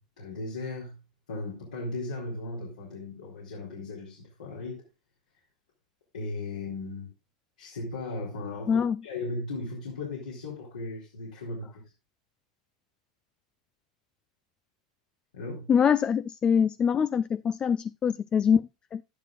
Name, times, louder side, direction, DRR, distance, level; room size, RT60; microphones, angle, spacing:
voice 1, 0.2-1.0 1.3-4.8 6.1-7.1 7.6-11.8 15.3-15.7, left 2 dB, 80° left, 3.4 m, -37 dB
voice 2, 8.7-9.0 15.7-19.0, left 7 dB, 25° left, 0.4 m, -24 dB
11.5 x 10.5 x 2.4 m
hypercardioid pair, 90°, 4 cm